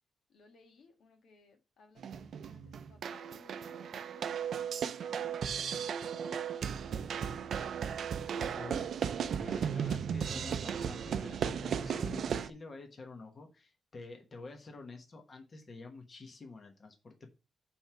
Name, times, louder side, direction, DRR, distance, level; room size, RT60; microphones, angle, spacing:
voice 1, 0.3-7.1, left 4 dB, 75° left, 1.6 m, -61 dB
sound 1, 2.0-12.5, right 7 dB, 65° right, 0.5 m, -36 dB
voice 2, 8.5-17.3, left 3 dB, 35° left, 1.2 m, -49 dB
5.6 x 4.5 x 5.7 m
wide cardioid pair, 155°, 0 cm